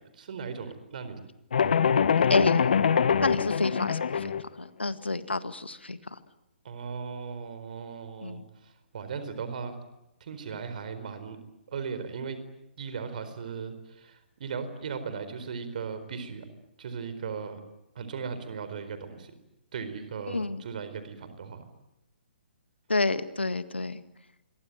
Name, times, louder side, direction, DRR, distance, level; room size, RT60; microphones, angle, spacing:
voice 1, 0.2-1.2 6.6-8.4 8.9-9.7 10.2-11.4 11.7-12.4 12.8-16.4 16.8-17.6 17.9-19.3 19.7-21.6, right 6 dB, 50° right, 11 dB, 4.3 m, -37 dB
sound 1, 1.5-4.4, left 7 dB, 55° left, 1.5 m, -24 dB
voice 2, 2.3-2.6 3.2-4.3 4.6-6.2 8.2-8.4 20.3-20.6 22.9-24.0, left 3 dB, 75° left, 12 dB, 1.8 m, -29 dB
27.5 x 23.0 x 9.2 m, 0.91 s
figure-of-eight pair, 130°, 6 cm